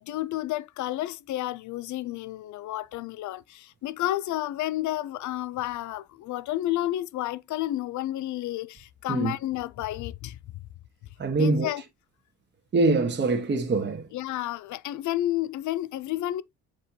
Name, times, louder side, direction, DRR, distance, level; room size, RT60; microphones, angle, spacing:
voice 1, 0.0-10.4 11.3-11.8 14.1-16.4, left 14 dB, 70° left, 0.5 m, -31 dB
voice 2, 11.2-11.7 12.7-14.1, right 3 dB, 35° right, 1.2 m, -24 dB
7.7 x 4.5 x 2.8 m
cardioid pair, 90°, 30 cm